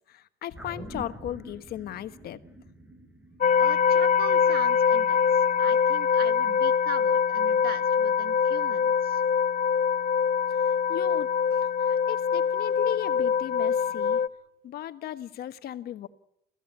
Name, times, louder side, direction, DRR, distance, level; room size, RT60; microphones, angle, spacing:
voice 1, 0.1-2.4 10.9-11.3 11.8-14.2 14.6-16.1, left 12 dB, 65° left, 11 dB, 1.3 m, -36 dB
sound 1, 0.6-5.2 5.5-5.6, equal, 10° right, 3.1 m, -45 dB
sound 2, 3.4-14.3, left 7 dB, 50° left, 1.0 m, -23 dB
voice 2, 3.6-9.2, right 10 dB, 65° right, 11 dB, 1.7 m, -41 dB
28.5 x 16.0 x 8.7 m, 0.78 s
cardioid pair, 110°, 17 cm